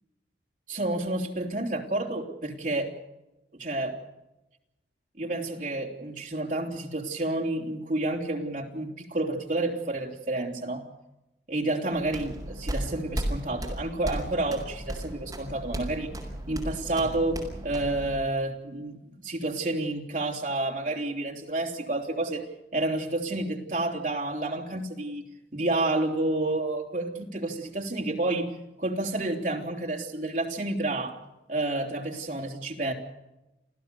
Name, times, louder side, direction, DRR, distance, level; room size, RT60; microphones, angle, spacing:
voice 1, 0.7-2.9 3.5-4.0 5.2-10.8 11.5-16.1 16.5-22.5 22.7-25.2 25.5-28.5 28.8-31.2 31.5-32.9, right 2 dB, 45° right, 1 dB, 3.4 m, -30 dB
sound 1, 11.9-18.2, equal, 20° right, 5.3 m, -35 dB
28.0 x 15.5 x 6.8 m, 0.97 s
head